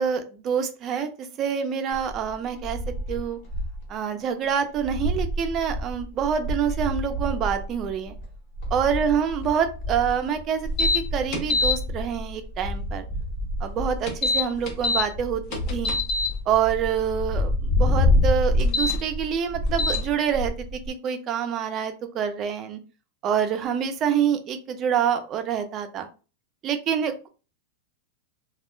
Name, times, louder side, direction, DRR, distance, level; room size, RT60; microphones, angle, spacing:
voice 1, 0.0-2.8 3.1-3.4 3.9-8.1 8.7-13.1 13.6-16.0 16.5-22.8 23.2-26.1 26.6-27.3, right 8 dB, 25° right, 7 dB, 0.4 m, -26 dB
sound 1, 1.9-3.9 4.2-4.3 4.6-20.9, left 1 dB, 60° left, 1.0 m, -28 dB
sound 2, 10.8-11.0 11.3-11.7 14.1-15.0 15.5-16.3 18.6-18.9 19.8-20.0, left 3 dB, 40° left, 0.6 m, -23 dB
2.2 x 2.0 x 3.0 m, 0.34 s
supercardioid pair, 160°, 0 cm